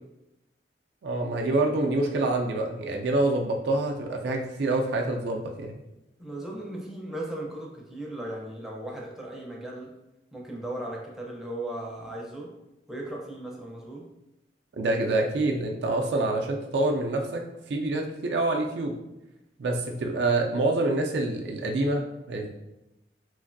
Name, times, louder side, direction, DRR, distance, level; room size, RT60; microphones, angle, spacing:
voice 1, 1.0-5.8 14.8-17.4 17.7-19.0 19.6-22.5, right 2 dB, 65° right, 2 dB, 0.4 m, -26 dB
voice 2, 6.2-10.0 10.3-12.5 12.9-14.1, right 1 dB, ahead, -3 dB, 0.5 m, -37 dB
3.0 x 2.5 x 2.5 m, 0.92 s
head